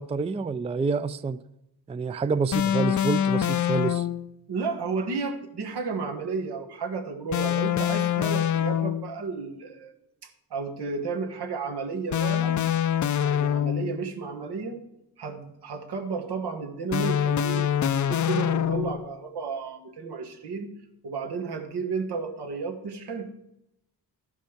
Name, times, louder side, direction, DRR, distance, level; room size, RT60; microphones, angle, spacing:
voice 1, 0.0-1.4 1.9-4.0, right 4 dB, 15° right, 14 dB, 0.3 m, -28 dB
sound 1, 2.5-4.3 7.3-9.2 12.1-14.1 16.9-19.1, left 10 dB, 50° left, 0.4 m, -25 dB
voice 2, 4.5-9.9 10.2-12.6 13.2-14.8 15.2-20.7 21.0-23.3, right 4 dB, 80° right, 4 dB, 1.4 m, -32 dB
12.0 x 5.3 x 5.0 m, 0.84 s
cardioid pair, 70°, 39 cm